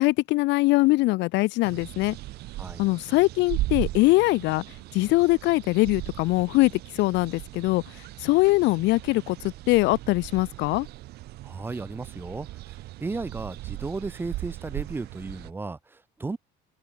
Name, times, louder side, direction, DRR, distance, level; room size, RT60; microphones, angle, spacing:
voice 1, 0.0-2.2 2.8-4.6 4.9-7.8 8.2-10.9, left 21 dB, 70° left, 0.9 m, -22 dB
sound 1, 1.6-15.5, right 17 dB, 60° right, 1.3 m, -38 dB
voice 2, 11.4-16.4, right 3 dB, 10° right, 1.8 m, -35 dB
open air
cardioid pair, 180°, 19 cm